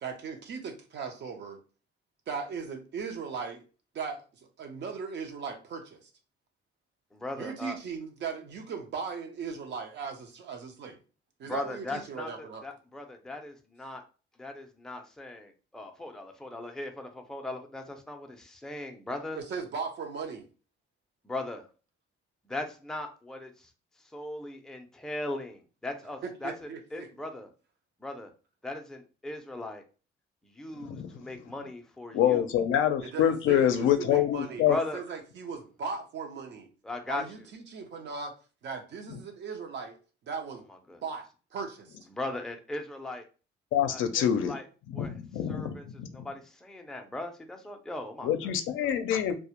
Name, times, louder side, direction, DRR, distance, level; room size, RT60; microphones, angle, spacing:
voice 1, 0.0-1.6 2.3-3.6 3.9-4.2 4.6-6.1 7.4-11.0 11.4-12.6 19.3-20.5 26.2-27.1 33.0-36.7 37.1-38.3 38.6-40.0 40.2-40.6 41.0-41.3 41.5-42.0, right 5 dB, 60° right, 0.6 m, -38 dB
voice 2, 7.1-7.8 11.4-14.0 14.4-19.4 21.2-21.7 22.5-23.5 24.1-27.5 28.0-28.3 28.6-29.8 30.4-32.5 34.7-35.0 36.8-37.2 40.9-41.0 42.1-43.2 43.9-44.6 44.9-45.1 45.5-45.8 46.1-48.5 48.8-48.9, left 2 dB, 5° left, 0.4 m, -38 dB
voice 3, 30.8-31.1 32.1-34.8 43.7-44.6 44.9-46.1 48.2-49.3, left 10 dB, 80° left, 0.4 m, -26 dB
2.1 x 2.0 x 2.8 m
cardioid pair, 90°, 20 cm